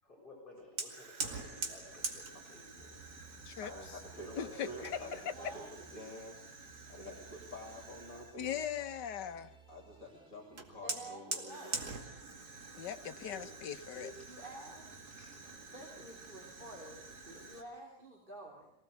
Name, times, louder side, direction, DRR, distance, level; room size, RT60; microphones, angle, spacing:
voice 1, 0.0-3.5 4.1-5.1 5.4-5.6 5.9-6.0 14.1-14.3 15.1-15.4 17.3-17.5, left 2 dB, 30° left, -3 dB, 7.0 m, -55 dB
Fire, 0.8-8.4 10.6-17.6, right 3 dB, 60° right, 2.8 m, -45 dB
sound 1, 2.8-6.2 6.6-12.2 12.6-16.5, right 4 dB, 5° right, 3.9 m, -61 dB
voice 2, 3.6-6.4 6.9-8.5 9.7-12.0, left 1 dB, 50° left, 3 dB, 3.7 m, -49 dB
voice 3, 4.4-5.3 8.4-9.5 12.8-14.1, left 8 dB, 80° left, 10 dB, 1.7 m, -39 dB
voice 4, 5.0-5.9 10.8-11.9 13.3-13.6 13.9-15.0 15.7-18.7, right 1 dB, 30° right, -1 dB, 3.4 m, -50 dB
23.5 x 17.5 x 8.1 m, 0.78 s
omnidirectional pair, 1.9 m